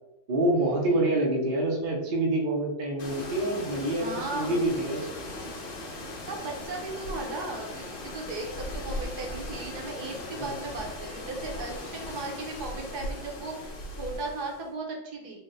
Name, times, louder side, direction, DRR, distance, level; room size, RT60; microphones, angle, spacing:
voice 1, 0.3-5.1 10.4-10.5, right 1 dB, 50° right, -1 dB, 0.6 m, -26 dB
sound 1, 3.0-14.7, left 1 dB, 75° left, 0.5 m, -38 dB
voice 2, 4.0-4.6 6.3-15.4, right 3 dB, 65° right, 0 dB, 1.3 m, -36 dB
3.9 x 2.2 x 3.8 m, 0.91 s
omnidirectional pair, 1.9 m